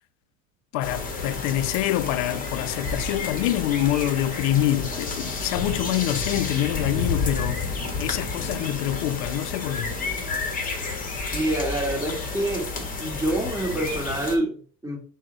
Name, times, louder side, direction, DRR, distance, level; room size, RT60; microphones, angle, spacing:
voice 1, 0.7-7.7 8.0-9.9, left 13 dB, 75° left, 0.5 m, -26 dB
sound 1, 0.8-14.4, left 4 dB, 20° left, 0.9 m, -30 dB
voice 2, 11.3-12.7 13.0-15.0, right 1 dB, 10° right, 1.5 m, -27 dB
6.1 x 2.1 x 3.8 m
supercardioid pair, 115°, 41 cm